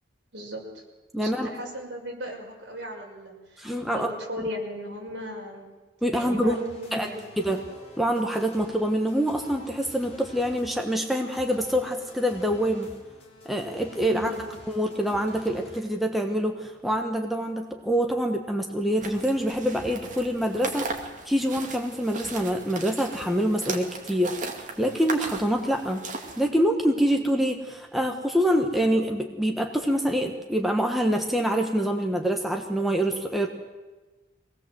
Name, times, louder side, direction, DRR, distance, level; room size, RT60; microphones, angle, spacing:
voice 1, 0.3-0.6 1.2-5.7 6.1-7.3 14.1-14.5, equal, 65° right, -1 dB, 6.0 m, -37 dB
voice 2, 1.1-1.5 3.6-4.1 4.4-4.5 6.0-6.6 6.9-7.1 7.4-7.6 8.0-12.9 13.4-14.3 14.7-20.9 21.2-24.3 24.8-26.0 26.4-33.5, equal, ahead, 2 dB, 1.4 m, -25 dB
sound 1, 6.5-15.8, left 1 dB, 35° left, 4.6 m, -48 dB
sound 2, 19.0-26.5, right 3 dB, 40° right, 2.5 m, -37 dB
24.0 x 18.5 x 7.9 m, 1.2 s
head